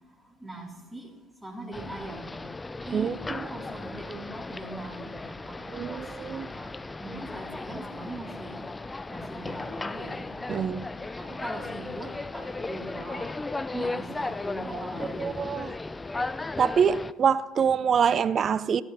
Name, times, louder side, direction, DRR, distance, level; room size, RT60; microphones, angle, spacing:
voice 1, 0.4-1.1 1.4-2.4 2.8-5.6 5.9-8.6 9.1-10.3 11.2-13.4 13.7-15.5, right 2 dB, 5° right, 3.8 m, -41 dB
sound 1, 1.7-17.1, left 3 dB, 20° left, 0.5 m, -36 dB
voice 2, 2.9-3.5 5.7-6.5 10.5-10.9 15.2-15.7 16.6-18.8, right 7 dB, 45° right, 0.5 m, -25 dB
14.0 x 10.5 x 4.2 m
hypercardioid pair, 75°, 0 cm